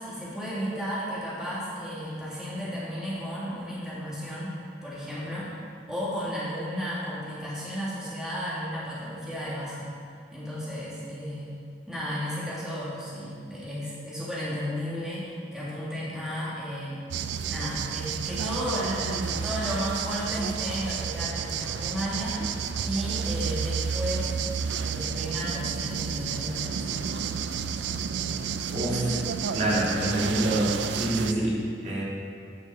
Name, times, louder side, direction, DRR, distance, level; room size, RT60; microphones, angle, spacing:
voice 1, 0.0-5.5 5.9-9.9 10.3-11.6 11.9-17.0 17.5-22.4 22.8-24.3 24.8-27.1, equal, 5° right, -9 dB, 1.9 m, -33 dB
sound 1, 17.1-31.3, right 6 dB, 90° right, 0.4 m, -31 dB
voice 2, 28.7-29.2 29.5-32.0, right 1 dB, 40° right, -6 dB, 1.8 m, -26 dB
9.7 x 7.0 x 4.1 m, 2.3 s
head